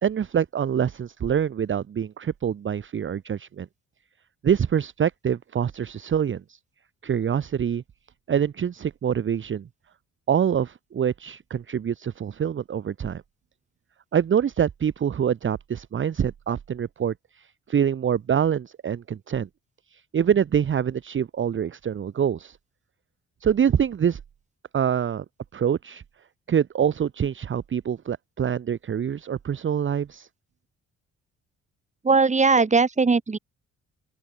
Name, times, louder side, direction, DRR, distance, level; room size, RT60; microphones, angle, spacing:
voice 1, 0.0-3.7 4.4-6.6 7.0-7.8 8.3-9.7 10.3-13.2 14.1-19.5 19.9-22.6 23.4-24.2 24.7-25.2 25.5-26.0 26.5-30.3, right 8 dB, 40° right, 1.0 m, -25 dB
voice 2, 32.0-33.4, right 4 dB, 25° right, 1.7 m, -19 dB
open air
cardioid pair, 90°, 30 cm